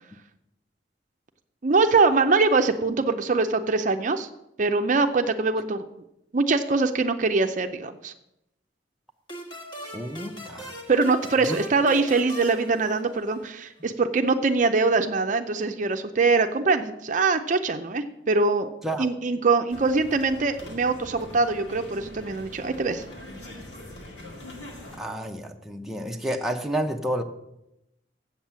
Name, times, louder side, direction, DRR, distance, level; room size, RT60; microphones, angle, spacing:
voice 1, 1.6-4.3 4.6-5.8 6.3-8.1 10.9-18.7 19.0-23.0, right 3 dB, 45° right, 7 dB, 0.5 m, -23 dB
sound 1, 9.3-13.6, equal, 25° left, 1.5 m, -41 dB
voice 2, 9.9-10.7 11.4-11.6 18.8-19.1 25.0-27.2, right 1 dB, ahead, 2 dB, 0.7 m, -30 dB
sound 2, 19.7-25.0, left 1 dB, 80° left, 2.2 m, -42 dB
8.0 x 7.2 x 7.3 m, 0.85 s
head